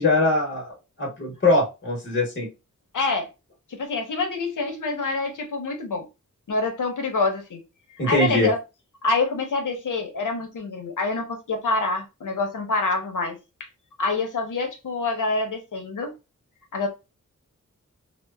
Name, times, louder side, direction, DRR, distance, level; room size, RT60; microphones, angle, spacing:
voice 1, 0.0-2.5 8.0-8.5, left 2 dB, 40° left, 0.9 m, -22 dB
voice 2, 2.9-3.3 3.7-6.1 6.5-7.6 8.0-8.6 9.0-13.4 14.0-16.1 16.7-16.9, left 3 dB, 75° left, 0.7 m, -26 dB
2.8 x 2.0 x 2.2 m
wide cardioid pair, 90°, 31 cm